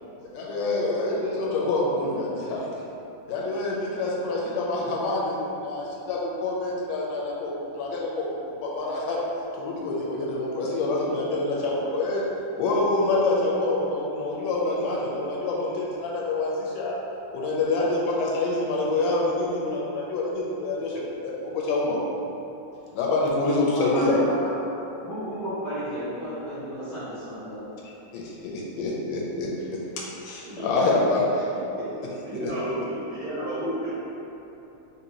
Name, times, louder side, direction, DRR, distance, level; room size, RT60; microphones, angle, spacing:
voice 1, 0.3-2.7 3.3-8.3 8.6-9.2 9.6-12.3 12.6-17.0 17.3-22.0 22.9-24.2 27.8-29.8 30.2-31.2 32.4-32.5, left 2 dB, 85° left, -3 dB, 2.2 m, -26 dB
voice 2, 23.7-27.6, equal, 55° left, -15 dB, 1.0 m, -33 dB
voice 3, 30.4-31.1 31.8-31.9 32.2-33.9, right 1 dB, 80° right, -11 dB, 2.2 m, -32 dB
5.0 x 2.7 x 2.9 m, 3.0 s
omnidirectional pair, 3.7 m